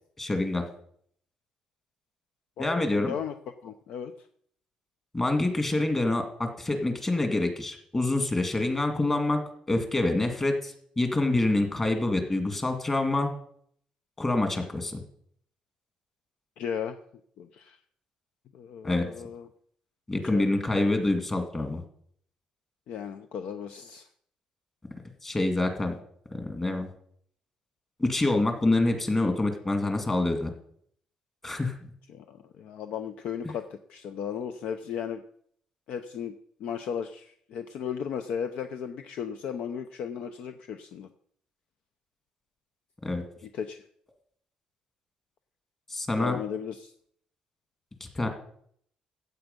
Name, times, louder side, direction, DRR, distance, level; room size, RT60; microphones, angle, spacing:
voice 1, 0.2-0.6 2.6-3.1 5.1-9.4 9.7-13.3 14.2-15.0 18.8-19.1 20.1-21.8 25.2-26.0 26.3-26.9 28.0-30.5 31.4-31.7 43.0-43.2 45.9-46.4 48.1-48.3, left 2 dB, 15° left, 5 dB, 2.0 m, -26 dB
voice 2, 2.6-3.3 3.6-4.3 16.6-17.0 17.4-17.8 18.5-19.5 20.2-20.5 22.9-24.1 32.1-35.2 35.9-36.3 36.6-41.1 43.4-43.8 46.2-46.9, left 8 dB, 65° left, 8 dB, 0.7 m, -35 dB
15.5 x 8.2 x 5.3 m, 0.65 s
cardioid pair, 155°, 2 cm